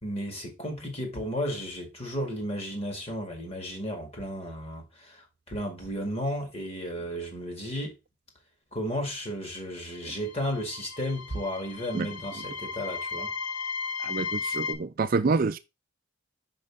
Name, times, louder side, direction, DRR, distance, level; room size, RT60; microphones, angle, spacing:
voice 1, 0.0-8.0 8.7-13.3, equal, 30° left, 2.2 m, -33 dB
sound 1, 9.9-14.7, left 5 dB, 65° left, 0.9 m, -35 dB
voice 2, 14.0-15.6, right 4 dB, 45° right, 0.4 m, -27 dB
5.3 x 5.3 x 3.5 m
head